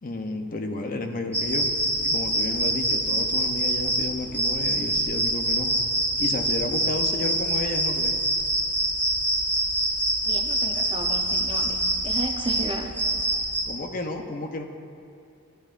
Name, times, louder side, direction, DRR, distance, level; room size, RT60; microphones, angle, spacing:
voice 1, 0.0-1.7 2.0-5.7 6.2-8.2 13.6-14.6, left 2 dB, 40° left, 4 dB, 0.8 m, -32 dB
sound 1, 1.3-13.6, right 1 dB, 10° left, 2.8 m, -25 dB
voice 2, 10.2-12.9, right 2 dB, 25° right, 3 dB, 0.7 m, -34 dB
16.5 x 11.5 x 2.6 m, 2.5 s
head